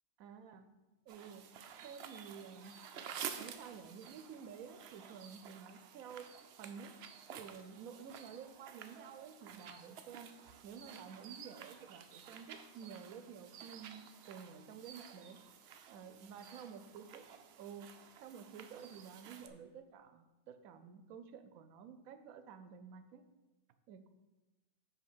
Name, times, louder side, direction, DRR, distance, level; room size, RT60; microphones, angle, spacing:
voice 1, 0.2-0.7 1.1-1.4 1.8-2.7 3.4-6.3 6.6-6.9 7.4-10.3 10.6-15.4 15.9-17.3 17.6-17.9 18.2-23.3 23.9-24.1, right 7 dB, 85° right, 10 dB, 1.1 m, -51 dB
sound 1, 1.1-19.5, right 8 dB, 65° right, 0.7 m, -52 dB
5.8 x 4.7 x 6.1 m, 1.1 s
omnidirectional pair, 1.4 m